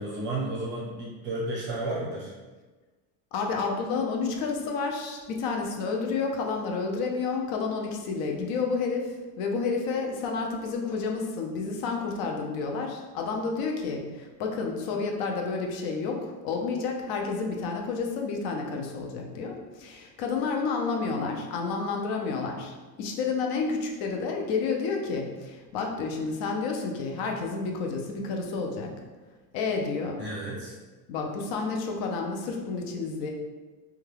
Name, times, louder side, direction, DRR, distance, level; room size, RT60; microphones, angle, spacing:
voice 1, 0.0-2.3 30.2-30.7, right 2 dB, 30° right, -5 dB, 0.5 m, -32 dB
voice 2, 3.3-28.9 29.5-30.2 31.1-33.3, left 4 dB, 60° left, 1 dB, 0.6 m, -30 dB
2.8 x 2.3 x 3.2 m, 1.3 s
cardioid pair, 170°, 42 cm